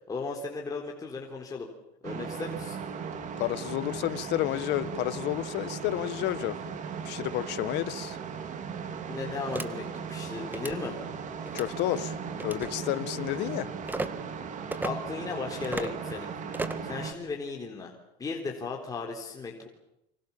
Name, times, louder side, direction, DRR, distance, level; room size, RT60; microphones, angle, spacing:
voice 1, 0.1-1.7 2.0-2.8 9.1-11.0 14.8-16.3 16.8-17.9 18.2-19.7, left 4 dB, 15° left, 0 dB, 3.8 m, -36 dB
sound 1, 2.0-17.1, right 6 dB, 35° right, 2.7 m, -37 dB
voice 2, 3.4-6.6 7.0-8.2 11.5-12.1 12.4-13.7, left 15 dB, 55° left, 14 dB, 1.7 m, -30 dB
sound 2, 9.5-9.7 10.5-10.8 11.5-11.7 12.4-12.7 13.9-14.1 14.7-14.9 15.6-15.9 16.5-16.9, right 2 dB, 10° right, 1.6 m, -34 dB
29.0 x 25.5 x 7.3 m, 0.82 s
supercardioid pair, 135°, 21 cm